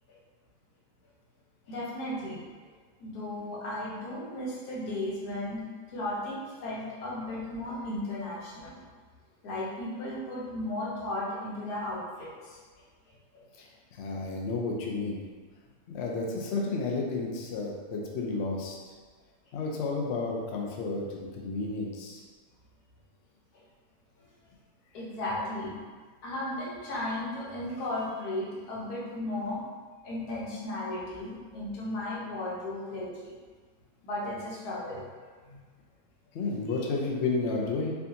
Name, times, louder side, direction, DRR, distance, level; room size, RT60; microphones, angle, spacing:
voice 1, 1.7-2.4 3.0-5.7 5.9-8.8 9.4-12.6 13.3-13.4 23.5-23.6 24.2-24.3 24.9-25.7 26.2-29.6 30.0-33.3 34.0-35.0 35.5-35.6, left 1 dB, 65° left, -5 dB, 1.4 m, -35 dB
voice 2, 13.6-15.2 15.9-18.7 19.5-22.2 36.3-37.9, left 3 dB, 80° left, -2 dB, 0.5 m, -32 dB
4.5 x 2.6 x 2.8 m, 1.5 s
omnidirectional pair, 1.9 m